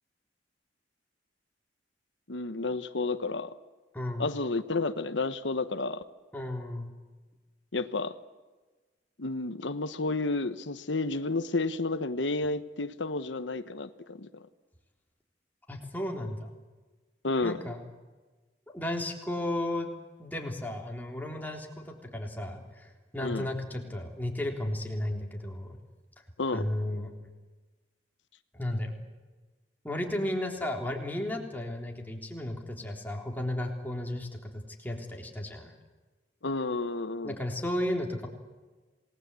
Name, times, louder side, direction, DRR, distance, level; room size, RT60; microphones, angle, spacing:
voice 1, 2.3-3.5 4.2-6.0 7.7-8.2 9.2-14.5 17.2-17.6 23.2-23.5 26.4-27.0 36.4-37.3, left 3 dB, 85° left, 12 dB, 1.1 m, -31 dB
voice 2, 3.9-4.3 6.3-6.9 15.7-16.5 17.4-17.8 18.7-19.9 20.2-25.8 26.5-27.1 28.5-28.9 29.8-35.7 37.2-38.3, left 1 dB, 10° left, 1 dB, 3.5 m, -34 dB
27.5 x 19.5 x 8.4 m, 1.3 s
head